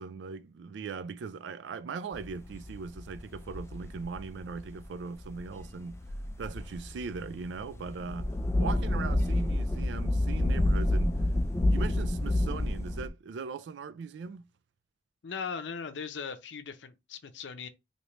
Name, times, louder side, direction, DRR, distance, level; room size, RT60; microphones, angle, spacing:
voice 1, 0.0-6.0 6.4-8.3 8.6-11.2 11.7-14.4, right 5 dB, 75° right, 0.3 m, -39 dB
sound 1, 2.1-13.1, left 1 dB, 15° left, 0.3 m, -29 dB
voice 2, 15.2-17.7, left 6 dB, 80° left, 0.5 m, -39 dB
3.2 x 2.8 x 2.9 m
head